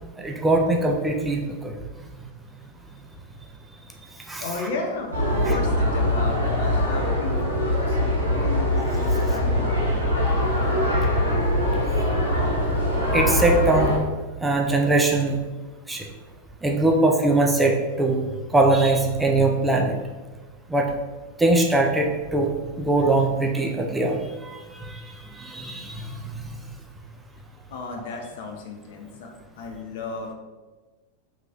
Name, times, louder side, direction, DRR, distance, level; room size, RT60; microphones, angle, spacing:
voice 1, 0.2-1.7 4.3-4.7 13.1-14.0 14.4-15.4 15.9-16.0 16.6-18.2 18.5-20.0 20.7-20.9 21.4-22.5 22.8-25.0 25.4-26.1, right 2 dB, 10° right, 1 dB, 0.3 m, -21 dB
voice 2, 4.4-9.9 27.7-30.3, left 3 dB, 55° left, 1 dB, 0.5 m, -34 dB
sound 1, 5.1-14.0, left 1 dB, 80° right, 0.8 m, -22 dB
3.0 x 2.7 x 2.4 m, 1.3 s
figure-of-eight pair, 90°, 0 cm